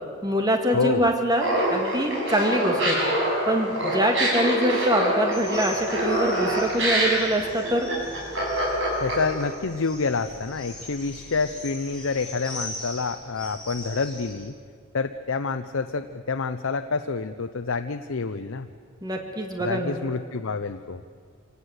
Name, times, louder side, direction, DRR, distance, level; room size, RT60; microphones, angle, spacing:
voice 1, 0.2-3.0 3.5-7.9 19.0-20.0, equal, 20° right, 3 dB, 2.0 m, -24 dB
voice 2, 0.7-1.1 9.0-14.5 14.9-18.7 19.6-21.0, left 4 dB, 75° left, 8 dB, 0.7 m, -28 dB
Laughter, 1.4-9.4, right 1 dB, 60° right, 6.9 m, -25 dB
sound 1, 5.3-14.3, left 1 dB, 5° left, 5.7 m, -40 dB
26.0 x 18.0 x 8.1 m, 2.1 s
head